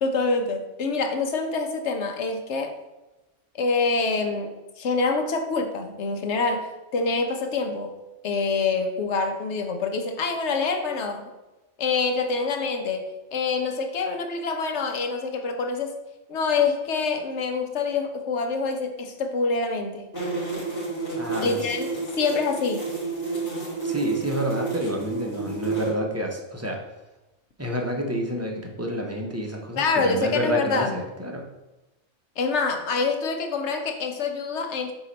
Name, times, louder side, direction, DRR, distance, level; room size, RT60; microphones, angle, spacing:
voice 1, 0.0-2.7 3.6-6.7 6.9-7.9 8.2-11.3 11.8-16.0 16.3-20.1 21.4-21.9 22.2-22.9 29.8-30.9 32.4-34.9, left 4 dB, 65° left, 5 dB, 1.1 m, -26 dB
Bee flying loop, 20.1-25.9, right 4 dB, 45° left, 2.5 m, -30 dB
voice 2, 21.2-21.6 23.8-26.8 27.6-31.5, equal, 15° right, 1 dB, 0.7 m, -29 dB
7.1 x 2.9 x 5.2 m, 1.0 s
omnidirectional pair, 1.3 m